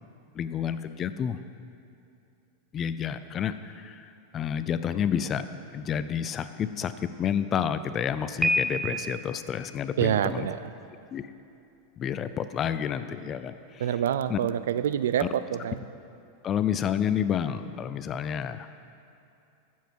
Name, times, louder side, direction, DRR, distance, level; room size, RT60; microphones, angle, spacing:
voice 1, 0.4-1.4 2.7-3.9 4.3-5.4 5.7-6.9 7.2-10.5 11.1-11.2 12.0-13.5 14.3-14.4 15.2-15.3 16.4-18.7, left 8 dB, 30° left, 12 dB, 0.5 m, -29 dB
Piano, 8.4-9.4, equal, 5° right, 0.8 m, -27 dB
voice 2, 10.0-10.6 13.8-15.9, right 10 dB, 80° right, 14 dB, 0.4 m, -26 dB
13.5 x 7.4 x 4.6 m, 2.7 s
hypercardioid pair, 125°, 0 cm